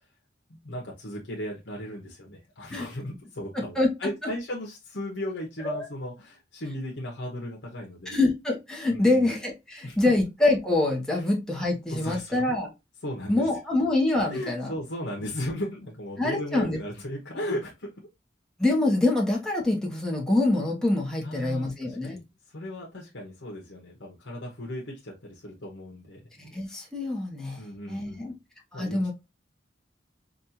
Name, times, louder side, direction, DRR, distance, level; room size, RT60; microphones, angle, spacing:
voice 1, 0.6-8.2 8.9-9.3 9.8-10.0 11.1-11.2 11.9-12.5 13.0-13.4 14.3-17.9 21.2-26.3 27.6-28.3 28.7-29.0, left 1 dB, 70° left, -1 dB, 1.0 m, -36 dB
voice 2, 3.5-3.9 5.6-5.9 8.1-12.7 13.3-14.7 16.2-16.8 18.6-22.2 26.4-28.3 28.7-29.1, left 2 dB, 5° left, -1 dB, 1.0 m, -25 dB
5.2 x 2.5 x 2.8 m, 0.23 s
head